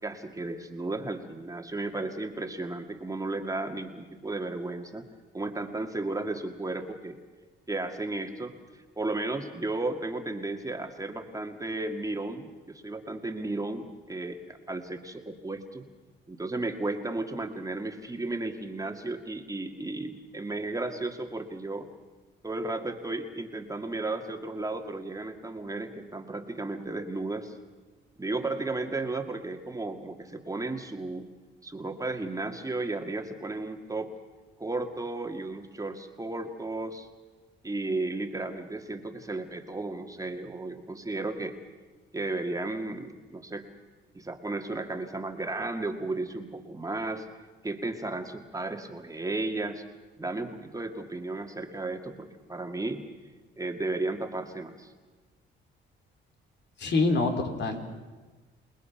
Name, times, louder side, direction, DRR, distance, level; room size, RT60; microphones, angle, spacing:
voice 1, 0.0-5.1 5.3-7.2 7.7-8.5 9.0-15.9 16.3-21.9 22.4-27.5 28.2-31.2 31.6-34.1 34.6-37.1 37.6-41.6 42.1-43.6 44.1-47.3 47.6-49.8 50.2-53.0 53.6-54.9, right 2 dB, 15° right, 4 dB, 2.0 m, -34 dB
voice 2, 56.8-57.8, left 3 dB, 60° left, 5 dB, 3.2 m, -26 dB
29.0 x 20.0 x 5.8 m, 1.3 s
cardioid pair, 90°, 20 cm